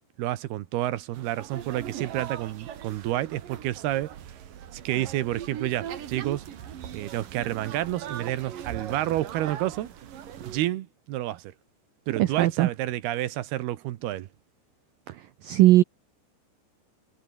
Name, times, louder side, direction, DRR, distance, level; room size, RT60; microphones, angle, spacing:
voice 1, 0.2-4.2 4.7-6.5 6.9-9.9 10.4-11.5 12.1-14.3, right 14 dB, 70° right, 2.7 m, -30 dB
sound 1, 1.1-10.6, right 9 dB, 55° right, 3.3 m, -39 dB
voice 2, 12.2-12.7 15.4-15.8, right 15 dB, 90° right, 1.9 m, -18 dB
omnidirectional pair, 5.4 m